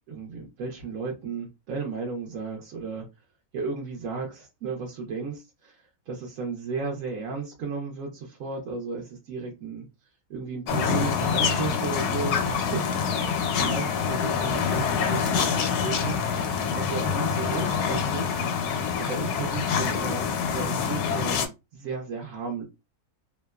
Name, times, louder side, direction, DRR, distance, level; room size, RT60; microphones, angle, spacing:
voice 1, 0.1-3.1 3.5-9.9 10.3-13.2 13.5-16.3 16.8-18.4 19.0-21.4 21.7-22.6, right 4 dB, 65° right, 1.0 m, -34 dB
sound 1, 10.7-21.5, left 6 dB, 90° left, 1.1 m, -26 dB
2.8 x 2.1 x 2.2 m
omnidirectional pair, 1.6 m